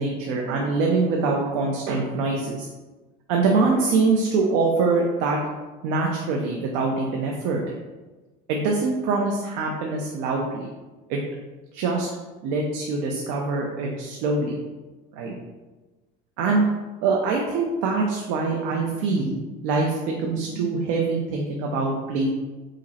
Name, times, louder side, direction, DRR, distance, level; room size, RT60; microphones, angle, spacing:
voice 1, 0.0-2.7 3.3-5.4 5.8-7.6 8.5-10.7 11.1-11.2 11.7-12.1 12.4-14.6 15.1-15.3 16.4-16.6 17.0-19.4 19.6-22.3, right 3 dB, 80° right, 0 dB, 0.6 m, -24 dB
5.0 x 2.0 x 4.1 m, 1.2 s
cardioid pair, 170°, 19 cm